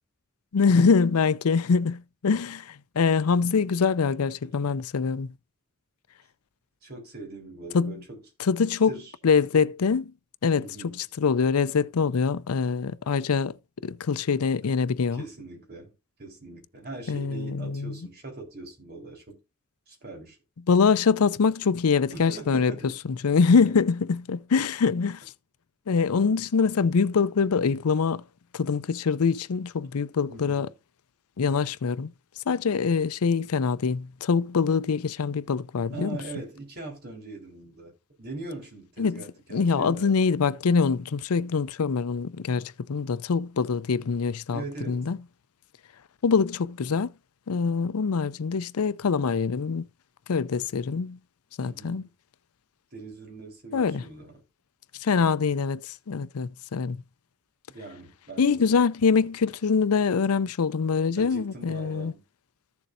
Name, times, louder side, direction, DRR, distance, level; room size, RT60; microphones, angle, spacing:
voice 1, 0.5-5.3 7.7-8.0 8.4-9.0 9.2-10.1 10.4-13.5 13.8-15.2 17.1-18.0 20.7-22.7 23.2-25.2 25.9-28.2 28.5-30.7 31.4-32.1 32.5-36.2 39.0-39.2 39.5-45.2 46.2-47.1 47.5-49.8 50.3-51.2 51.6-52.0 53.7-54.0 55.0-57.0 58.4-62.1, left 5 dB, 85° left, 0.5 m, -24 dB
voice 2, 6.8-8.2 8.7-9.1 10.6-11.0 15.1-19.4 19.9-20.4 22.1-22.9 23.6-23.7 30.3-30.7 35.9-40.2 44.5-45.0 51.6-52.1 52.9-54.3 57.7-58.8 61.2-62.2, right 3 dB, 45° right, 3.9 m, -41 dB
14.5 x 7.1 x 2.6 m
head